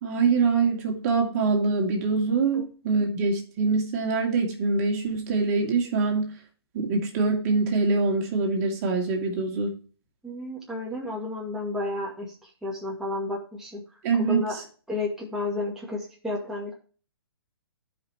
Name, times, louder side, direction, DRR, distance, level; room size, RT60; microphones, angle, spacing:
voice 1, 0.0-6.3 6.7-9.8 14.0-14.4, right 4 dB, 35° right, 1 dB, 2.6 m, -24 dB
voice 2, 10.2-13.8 14.3-16.7, left 2 dB, 5° right, -4 dB, 2.2 m, -32 dB
14.0 x 5.4 x 3.0 m, 0.39 s
figure-of-eight pair, 130°, 13 cm